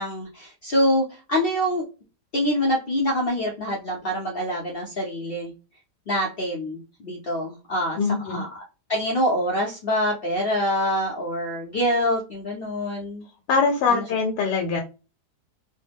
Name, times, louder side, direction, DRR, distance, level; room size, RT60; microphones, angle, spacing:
voice 1, 0.0-1.8 2.3-5.5 6.1-8.0 8.3-8.5 8.9-13.3 13.9-14.0, equal, 65° left, -3 dB, 0.5 m, -25 dB
voice 2, 7.9-8.4 13.5-14.8, left 4 dB, 80° left, 3 dB, 1.2 m, -22 dB
3.1 x 2.1 x 3.4 m, 0.31 s
omnidirectional pair, 1.8 m